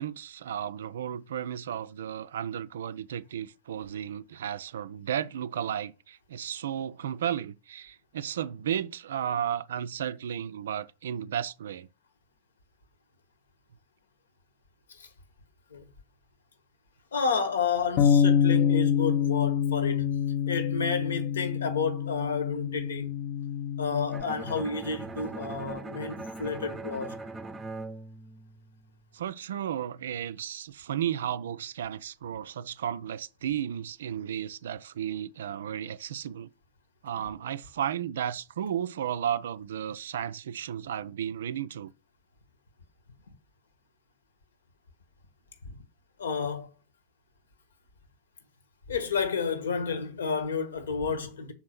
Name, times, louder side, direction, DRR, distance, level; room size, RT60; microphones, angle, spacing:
voice 1, 0.0-11.9 29.1-36.5 37.0-41.9, right 9 dB, 60° right, 0.4 m, -33 dB
voice 2, 17.1-23.1 23.8-27.2 45.7-45.8 46.2-46.7 48.9-51.5, left 5 dB, 70° left, 1.3 m, -31 dB
Bass guitar, 18.0-24.2, left 8 dB, 40° left, 0.6 m, -26 dB
Bowed string instrument, 24.1-29.0, right 2 dB, 10° right, 0.6 m, -40 dB
5.8 x 4.3 x 6.0 m
figure-of-eight pair, 90°, 0 cm